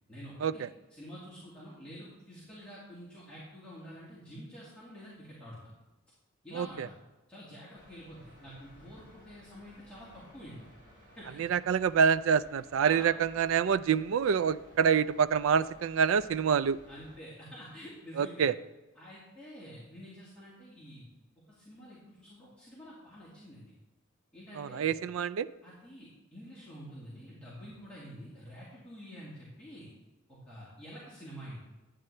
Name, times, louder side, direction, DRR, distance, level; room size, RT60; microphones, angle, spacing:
voice 1, 0.1-0.6 0.9-5.7 6.4-6.9 7.3-10.6 11.2-11.5 12.8-13.1 16.9-18.5 18.9-21.1 21.5-23.7 24.3-24.9 25.6-29.9 30.3-31.6, equal, 5° left, -10 dB, 2.1 m, -48 dB
sound 1, 7.7-17.2, equal, 40° right, 3.8 m, -57 dB
voice 2, 11.4-16.8 18.2-18.5 24.6-25.5, right 7 dB, 70° right, 16 dB, 0.3 m, -26 dB
10.5 x 8.8 x 3.3 m, 1.1 s
head